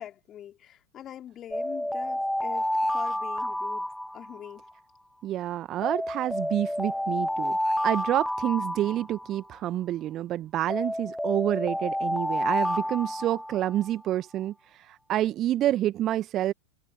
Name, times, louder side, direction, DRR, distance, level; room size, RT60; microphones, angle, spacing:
voice 1, 0.0-2.7 2.9-3.9 4.1-4.6, left 11 dB, 30° left, 4.6 m, -43 dB
sound 1, 1.5-4.7 5.8-9.6 10.7-13.9, left 1 dB, ahead, 0.5 m, -30 dB
voice 2, 5.2-14.5 14.9-16.5, right 13 dB, 30° right, 1.9 m, -28 dB
figure-of-eight pair, 90°, 0 cm